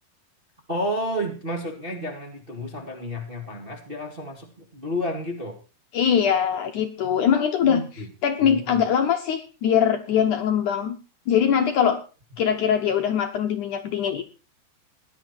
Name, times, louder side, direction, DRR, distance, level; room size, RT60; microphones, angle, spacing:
voice 1, 0.7-5.6 7.6-8.1 8.4-8.8, equal, 20° right, 2 dB, 1.4 m, -31 dB
voice 2, 5.9-7.8 8.2-11.0 11.3-12.0 12.4-14.3, left 8 dB, 70° left, 6 dB, 2.1 m, -22 dB
17.5 x 11.5 x 4.5 m, 0.34 s
omnidirectional pair, 4.6 m